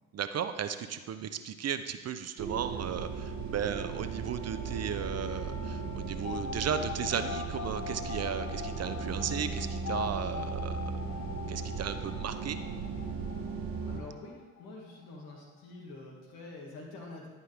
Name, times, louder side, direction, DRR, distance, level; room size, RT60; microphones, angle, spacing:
voice 1, 0.1-10.9 11.5-12.6, right 8 dB, 45° right, 10 dB, 0.7 m, -35 dB
sound 1, 2.4-14.0, right 5 dB, 65° right, 1.3 m, -37 dB
sound 2, 6.2-14.7 15.0-15.1 15.3-15.4, left 7 dB, 45° left, 0.8 m, -42 dB
voice 2, 13.8-17.3, left 2 dB, 75° left, -1 dB, 2.2 m, -46 dB
11.0 x 5.4 x 3.4 m, 1.3 s
hypercardioid pair, 50°, 36 cm